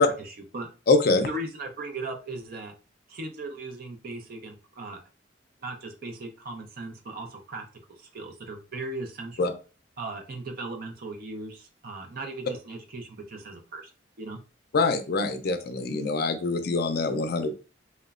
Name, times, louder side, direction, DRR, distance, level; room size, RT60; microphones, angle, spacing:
voice 1, 0.0-0.7 1.3-2.7 3.1-5.0 5.6-7.6 8.0-9.6 10.0-13.9 14.2-14.4, right 2 dB, 55° right, 4 dB, 0.5 m, -38 dB
voice 2, 0.9-1.3 9.4-9.5 14.7-17.5, left 3 dB, 55° left, 8 dB, 0.4 m, -24 dB
2.9 x 2.1 x 2.3 m, 0.34 s
head